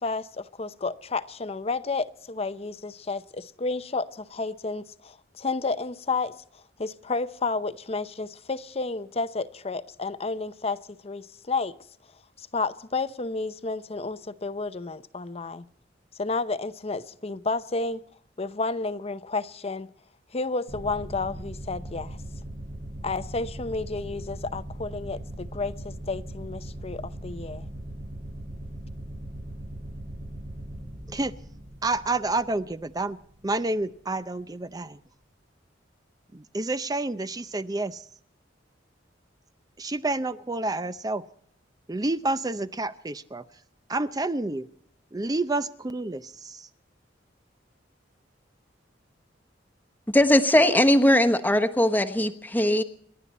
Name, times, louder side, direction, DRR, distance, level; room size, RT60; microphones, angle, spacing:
voice 1, 0.0-10.8 11.0-11.7 12.4-15.7 16.2-18.0 18.4-19.9 20.3-22.2 23.0-27.7, left 3 dB, 35° left, 0.7 m, -31 dB
sound 1, 20.7-33.9, right 1 dB, 40° right, 1.4 m, -39 dB
voice 2, 31.8-35.0 36.3-38.0 39.8-41.2 41.9-43.4 43.9-44.7 45.1-46.7, right 2 dB, 20° right, 0.6 m, -29 dB
voice 3, 50.1-52.8, left 1 dB, 10° left, 1.1 m, -20 dB
29.0 x 11.5 x 4.2 m
head